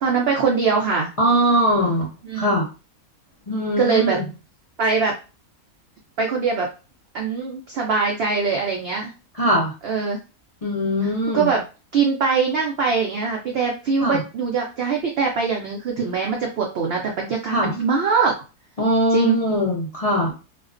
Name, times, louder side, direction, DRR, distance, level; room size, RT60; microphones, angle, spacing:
voice 1, 0.0-1.1 2.2-2.5 3.8-4.2 4.8-5.2 6.2-6.7 7.1-9.1 9.8-10.2 11.3-11.6 11.9-18.3 19.1-19.4, right 5 dB, 70° right, 0 dB, 0.6 m, -22 dB
voice 2, 1.2-2.1 2.3-2.7 3.5-4.3 9.3-9.7 10.6-11.5 14.0-14.2 17.5-17.7 18.8-20.3, equal, 60° left, -5 dB, 0.3 m, -21 dB
2.4 x 2.2 x 2.4 m, 0.32 s
omnidirectional pair, 1.5 m